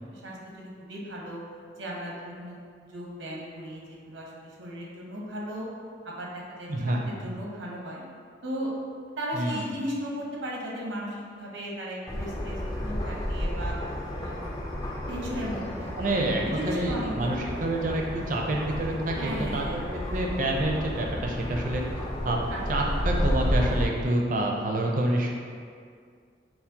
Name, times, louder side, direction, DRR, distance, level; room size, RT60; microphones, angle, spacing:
voice 1, 0.1-1.4 1.8-2.6 2.9-5.7 6.0-8.0 8.4-8.7 9.2-13.8 14.2-14.5 15.1-16.1 16.4-17.7 19.1-19.8 22.5-22.6, equal, 90° right, -3 dB, 0.8 m, -36 dB
voice 2, 6.7-7.1 9.3-9.7 16.0-21.8 22.2-22.4 22.7-25.3, right 1 dB, 45° right, 0 dB, 0.4 m, -28 dB
sound 1, 12.1-23.8, left 1 dB, 20° left, 0.4 m, -31 dB
5.7 x 2.1 x 2.8 m, 2.1 s
head